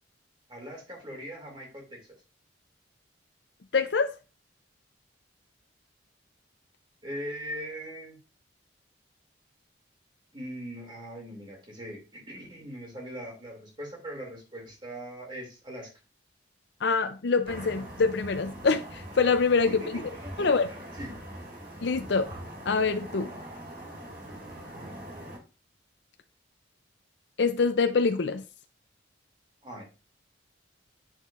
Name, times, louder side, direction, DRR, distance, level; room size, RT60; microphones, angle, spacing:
voice 1, 0.5-2.0 7.0-8.2 10.3-15.9 20.1-20.5 21.0-21.1 24.7-25.0 29.6-29.8, equal, 25° right, 2.5 m, -40 dB
voice 2, 3.7-4.1 16.8-20.0 20.4-20.7 21.8-22.3 22.7-23.3 27.4-28.4, left 4 dB, 65° left, 0.5 m, -25 dB
sound 1, 17.4-25.4, right 1 dB, 50° right, 4.5 m, -43 dB
7.9 x 6.5 x 2.5 m
head